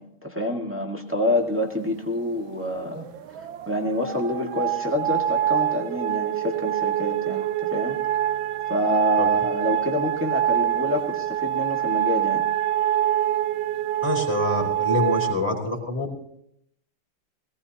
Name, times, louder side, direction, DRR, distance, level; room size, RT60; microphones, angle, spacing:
voice 1, 0.0-3.0 3.4-8.0 8.7-12.5, left 1 dB, 5° right, 0 dB, 1.5 m, -27 dB
sound 1, 2.8-15.3, right 12 dB, 70° right, 1.4 m, -25 dB
voice 2, 14.0-16.1, left 1 dB, 25° left, 0 dB, 3.4 m, -26 dB
21.5 x 17.5 x 2.9 m, 0.72 s
omnidirectional pair, 2.4 m